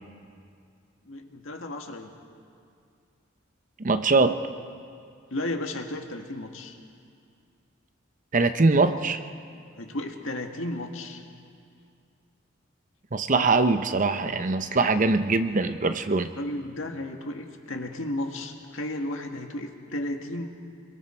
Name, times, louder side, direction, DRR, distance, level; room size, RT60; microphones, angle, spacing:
voice 1, 1.1-2.1 5.3-6.8 9.7-11.2 16.4-20.5, left 1 dB, 80° left, 3 dB, 1.8 m, -33 dB
voice 2, 3.8-4.4 8.3-9.2 13.1-16.3, right 3 dB, 40° right, 10 dB, 0.8 m, -22 dB
26.5 x 22.5 x 4.5 m, 2.3 s
head